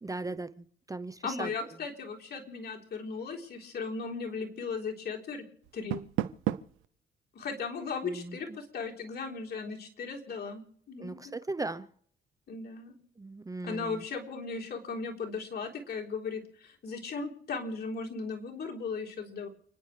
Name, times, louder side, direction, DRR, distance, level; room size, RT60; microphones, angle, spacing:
voice 1, 0.0-1.5 8.0-8.4 11.0-11.9 13.2-14.0, right 2 dB, 15° right, 12 dB, 0.7 m, -38 dB
voice 2, 1.2-5.4 5.7-6.0 7.3-11.1 12.5-13.0 13.6-19.5, left 4 dB, 55° left, 0 dB, 3.7 m, -37 dB
Door, 5.6-6.9, right 14 dB, 90° right, 0.7 m, -33 dB
29.5 x 10.0 x 3.3 m, 0.63 s
cardioid pair, 90°, 20 cm